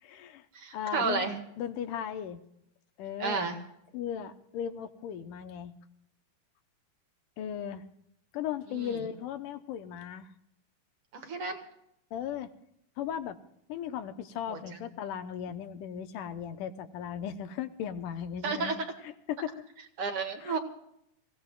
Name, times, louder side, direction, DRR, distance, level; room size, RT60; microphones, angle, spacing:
voice 1, 0.0-0.5 0.7-1.3 1.6-2.4 3.0-3.5 3.9-5.7 7.4-7.8 8.3-10.3 12.1-12.5 13.0-13.4 13.7-19.7 20.4-20.6, left 9 dB, 90° left, 9 dB, 2.5 m, -37 dB
voice 2, 0.5-1.4 3.2-3.6 8.7-9.0 11.1-11.6 14.5-14.6 18.4-18.8 20.0-20.6, right 4 dB, 50° right, 5 dB, 2.6 m, -31 dB
27.0 x 17.0 x 2.4 m, 0.75 s
omnidirectional pair, 3.7 m